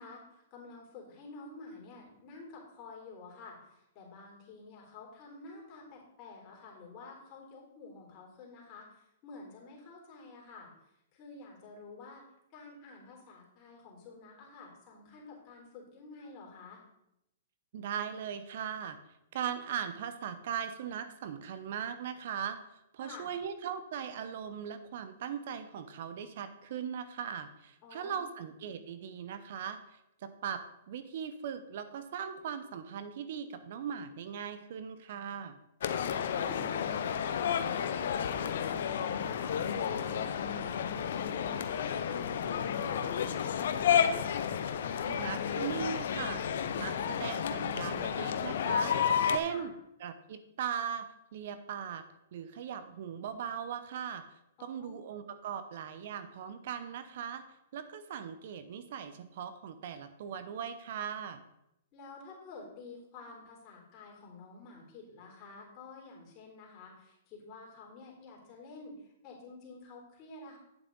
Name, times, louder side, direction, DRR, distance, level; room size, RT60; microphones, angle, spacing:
voice 1, 0.0-10.7 11.1-12.2 12.5-16.8 23.0-23.3 27.8-28.2 35.8-44.0 49.5-49.7 54.6-55.0 61.9-70.6, left 3 dB, 35° left, -2 dB, 3.5 m, -50 dB
voice 2, 17.7-19.0 19.3-35.6 44.9-46.4 46.8-48.9 49.2-49.7 50.0-52.0 52.3-54.2 54.6-57.4 57.7-61.4, right 8 dB, 60° right, 11 dB, 0.8 m, -39 dB
sound 1, 35.8-49.4, left 8 dB, 65° left, 0.7 m, -31 dB
9.0 x 7.6 x 3.9 m, 0.84 s
hypercardioid pair, 120°, 0 cm